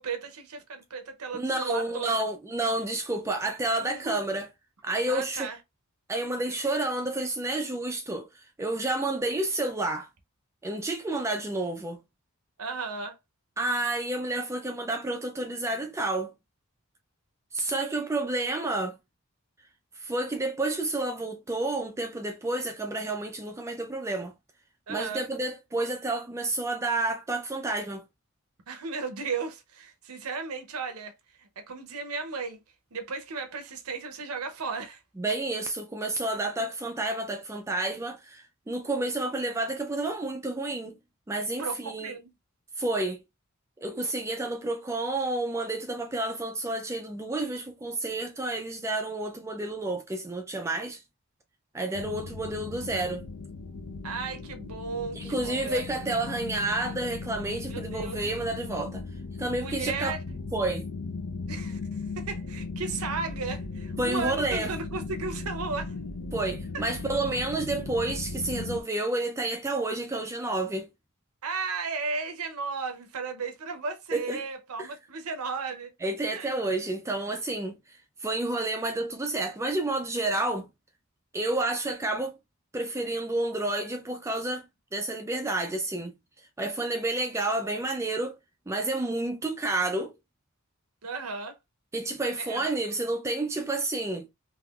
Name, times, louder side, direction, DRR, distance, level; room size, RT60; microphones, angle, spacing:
voice 1, 0.0-2.2 3.8-4.2 5.1-5.6 12.6-13.2 24.9-25.2 28.7-31.1 31.4-32.6 32.9-35.0 41.6-42.3 43.9-44.0 54.0-56.2 57.7-58.2 59.6-60.2 61.5-61.8 62.2-65.9 66.7-66.8 71.4-75.9 76.3-76.5 91.0-91.6 92.4-92.6, right 4 dB, 80° right, 0.7 m, -35 dB
voice 2, 1.3-4.5 4.8-5.5 6.1-10.1 10.6-12.0 13.6-16.3 17.5-19.0 20.0-24.3 24.9-28.0 35.2-41.0 41.3-42.1 42.8-43.2 43.8-51.0 51.7-53.2 55.1-59.0 59.4-60.1 60.5-60.9 64.0-64.7 66.3-70.9 74.1-74.5 74.8-74.9 76.0-80.7 81.3-82.4 82.7-84.7 84.9-86.1 86.6-88.4 88.7-90.1 91.9-94.3, right 2 dB, 15° right, 0.3 m, -30 dB
sound 1, 51.9-68.8, left 3 dB, 75° left, 0.5 m, -37 dB
3.6 x 2.8 x 2.3 m
head